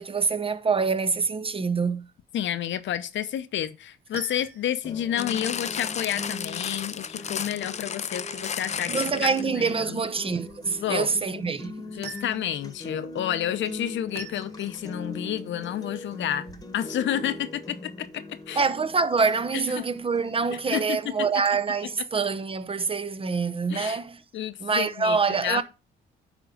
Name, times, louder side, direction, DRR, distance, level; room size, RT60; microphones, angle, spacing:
voice 1, 0.0-2.1 8.9-11.9 18.5-24.2 24.6-25.6, right 5 dB, 30° right, 0.7 m, -26 dB
voice 2, 2.3-8.9 9.2-10.0 10.8-11.2 12.0-16.5 16.7-18.6 19.8-19.9 20.7-21.0 23.7-24.0 24.3-25.6, left 11 dB, 70° left, 0.8 m, -30 dB
sound 1, 3.9-22.1, right 6 dB, 55° right, 1.3 m, -50 dB
sound 2, 4.8-20.8, left 2 dB, 20° left, 1.2 m, -41 dB
sound 3, 5.2-9.6 10.3-10.4, left 7 dB, 35° left, 0.5 m, -33 dB
10.0 x 3.8 x 5.1 m
cardioid pair, 90°, 20 cm